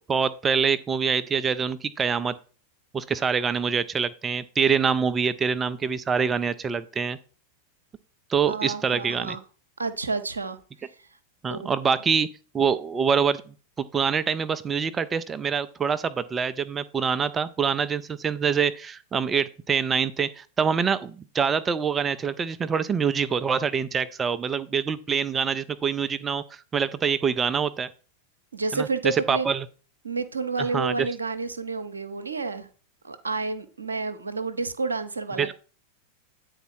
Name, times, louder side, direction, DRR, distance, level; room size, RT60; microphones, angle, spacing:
voice 1, 0.1-2.3 2.9-7.2 8.3-9.4 11.4-12.3 12.5-13.4 13.8-27.9 28.7-29.6 30.7-31.1 35.4-35.5, right 6 dB, 20° right, 0.4 m, -25 dB
voice 2, 8.5-9.4 9.8-10.6 11.5-11.7 28.5-29.5 30.0-32.7 33.0-35.5, right 3 dB, 75° right, 0.8 m, -30 dB
8.9 x 4.0 x 4.6 m
figure-of-eight pair, 90°, 0 cm